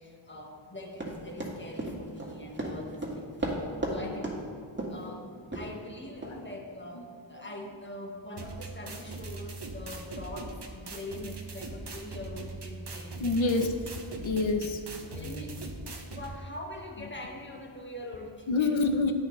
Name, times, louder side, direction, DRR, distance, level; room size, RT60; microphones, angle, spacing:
voice 1, 0.0-4.3 4.9-13.6 15.1-15.5 15.9-18.8, left 1 dB, 25° left, 0 dB, 1.6 m, -43 dB
Run, 1.0-4.0 4.2-4.4 4.8-5.0 5.5-5.7 6.2-6.3, right 2 dB, 20° right, 1.9 m, -34 dB
voice 2, 4.8-5.7 6.9-7.0 7.4-7.5 13.2-13.8 14.2-15.5 18.5-19.1, left 3 dB, 70° left, 6 dB, 0.9 m, -30 dB
sound 1, 8.4-16.4, right 3 dB, 55° right, 1.1 m, -41 dB
10.5 x 8.5 x 3.2 m, 2.1 s
cardioid pair, 45°, 48 cm